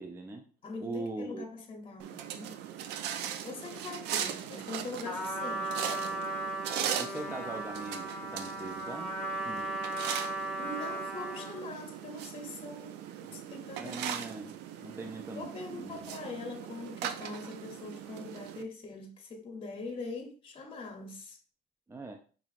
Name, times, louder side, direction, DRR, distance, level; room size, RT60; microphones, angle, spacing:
voice 1, 0.0-0.4 0.8-1.5 7.0-9.1 9.4-9.7 13.8-16.1 21.9-22.2, right 2 dB, 15° right, 0.4 m, -41 dB
voice 2, 0.6-2.6 3.4-6.2 10.6-13.0 13.2-14.0 15.4-21.4, left 3 dB, 30° left, 0.8 m, -42 dB
sound 1, 2.0-18.6, right 9 dB, 85° right, 0.4 m, -39 dB
Trumpet, 5.0-11.7, right 1 dB, 5° left, 0.9 m, -36 dB
5.5 x 2.5 x 2.4 m
cardioid pair, 110°, 17 cm